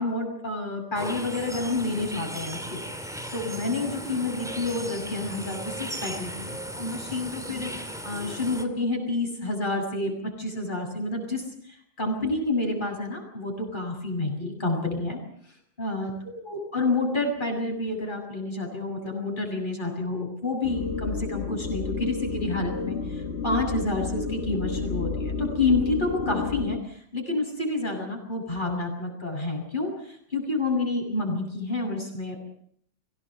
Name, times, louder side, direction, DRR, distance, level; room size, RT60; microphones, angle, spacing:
voice 1, 0.0-2.8 3.3-7.7 8.0-11.4 12.0-15.2 15.8-16.1 16.5-26.8 27.1-32.4, left 2 dB, 40° left, 2 dB, 7.8 m, -29 dB
sound 1, 1.0-8.7, equal, ahead, 2.6 m, -36 dB
sound 2, 20.6-26.8, left 4 dB, 55° left, 1.6 m, -31 dB
24.5 x 18.0 x 8.1 m, 0.65 s
omnidirectional pair, 1.4 m